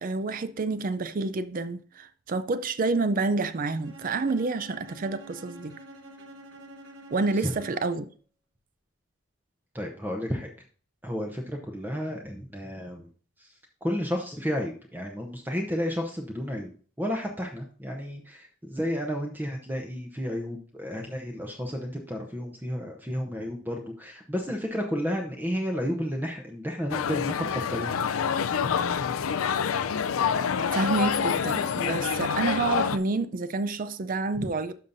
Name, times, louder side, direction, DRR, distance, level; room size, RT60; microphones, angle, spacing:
voice 1, 0.0-5.8 7.1-8.1 30.6-34.7, right 3 dB, 40° right, 0.4 m, -28 dB
Bowed string instrument, 3.8-8.1, right 1 dB, 60° right, 1.4 m, -47 dB
voice 2, 9.7-10.5 11.0-13.0 13.8-16.7 17.0-28.0, equal, 10° right, 0.7 m, -32 dB
sound 1, 26.9-33.0, left 7 dB, 80° left, 0.4 m, -27 dB
12.0 x 5.6 x 2.6 m
head